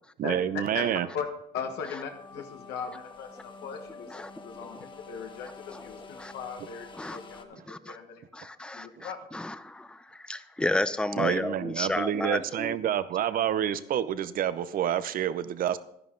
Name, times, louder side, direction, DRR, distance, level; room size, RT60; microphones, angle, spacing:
voice 1, 0.2-1.1 9.0-9.1 11.2-15.8, right 10 dB, 55° right, 14 dB, 0.7 m, -28 dB
voice 2, 1.5-4.2 4.4-4.8 5.1-6.0 6.3-7.6 7.9-8.2 8.7-9.2, left 7 dB, 80° left, 3 dB, 1.4 m, -38 dB
sound 1, 1.5-7.4, left 4 dB, 30° left, 1.2 m, -48 dB
voice 3, 5.7-6.3 7.0-7.2 7.7-8.0 8.3-12.9, left 2 dB, 5° left, 13 dB, 0.6 m, -33 dB
11.0 x 10.5 x 3.9 m, 0.76 s
cardioid pair, 110°, 17 cm